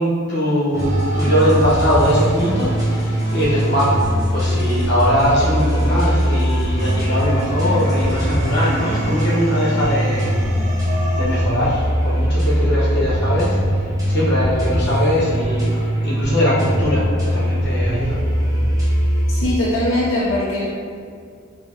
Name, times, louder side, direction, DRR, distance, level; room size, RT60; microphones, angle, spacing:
voice 1, 0.0-3.9 4.3-10.3 11.1-13.6 14.1-17.0 17.3-18.2, equal, 60° left, -7 dB, 1.4 m, -21 dB
sound 1, 0.7-19.5, equal, 20° right, 1.2 m, -20 dB
sound 2, 0.8-4.8 5.3-11.4, right 1 dB, 40° right, 0.7 m, -34 dB
voice 2, 19.3-20.7, left 1 dB, 80° left, -8 dB, 0.8 m, -21 dB
5.4 x 3.2 x 3.0 m, 2.2 s
head